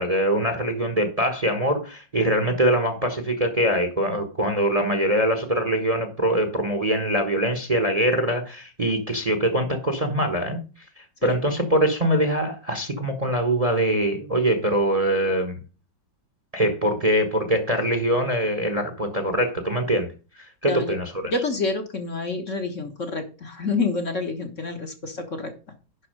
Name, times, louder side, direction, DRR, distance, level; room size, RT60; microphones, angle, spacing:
voice 1, 0.0-10.6 11.0-15.5 16.5-20.1 20.6-21.3, right 1 dB, 25° right, 6 dB, 1.2 m, -23 dB
voice 2, 21.2-25.5, left 3 dB, 45° left, 4 dB, 1.6 m, -28 dB
11.0 x 4.2 x 6.5 m, 0.33 s
omnidirectional pair, 1.9 m